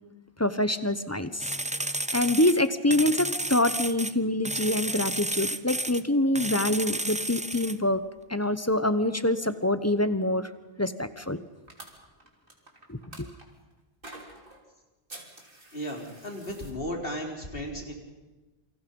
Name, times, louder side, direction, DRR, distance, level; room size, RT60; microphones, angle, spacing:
voice 1, 0.4-1.5 2.1-8.0 8.3-10.5 10.8-11.4 12.9-13.0, left 1 dB, 15° left, 12 dB, 0.9 m, -25 dB
sound 1, 1.4-4.1 4.4-6.0 6.3-7.8, right 1 dB, 10° right, 0.6 m, -31 dB
sound 2, 11.7-13.4 14.0-14.6 15.1-16.7, right 2 dB, 55° right, 3.4 m, -47 dB
voice 2, 15.7-17.9, equal, 60° left, 1 dB, 4.2 m, -35 dB
28.0 x 24.5 x 5.5 m, 1.1 s
omnidirectional pair, 1.1 m